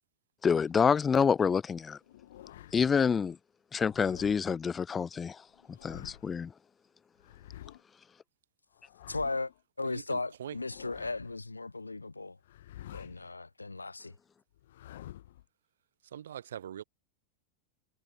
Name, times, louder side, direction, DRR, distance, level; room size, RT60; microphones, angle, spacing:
voice 1, 0.4-2.0 2.7-3.4 3.7-5.4 5.8-6.5, left 6 dB, 20° left, 0.6 m, -27 dB
sound 1, 2.0-2.9 3.8-4.4 5.5-6.4 7.2-7.8 8.7-9.6 10.4-11.4 12.4-13.3 14.5-15.4, left 13 dB, 60° left, 1.2 m, -49 dB
voice 2, 9.1-9.5 9.8-12.4 12.9-14.1, left 3 dB, 80° left, 0.9 m, -36 dB
voice 3, 9.8-10.6 16.0-16.8, right 10 dB, 65° right, 0.9 m, -42 dB
figure-of-eight pair, 90°, 0 cm